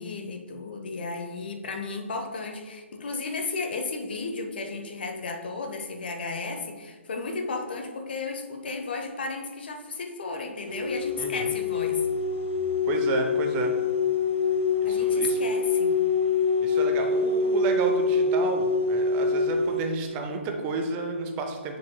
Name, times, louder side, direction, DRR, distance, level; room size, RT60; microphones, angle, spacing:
voice 1, 0.0-12.1 14.8-15.9, left 3 dB, 50° left, 4 dB, 0.9 m, -34 dB
sound 1, 10.7-19.8, left 4 dB, 80° right, 1.3 m, -25 dB
voice 2, 11.2-11.5 12.9-13.7 14.8-15.4 16.6-21.8, right 3 dB, 20° right, 3 dB, 0.7 m, -31 dB
7.4 x 6.2 x 2.2 m, 1.4 s
figure-of-eight pair, 135°, 7 cm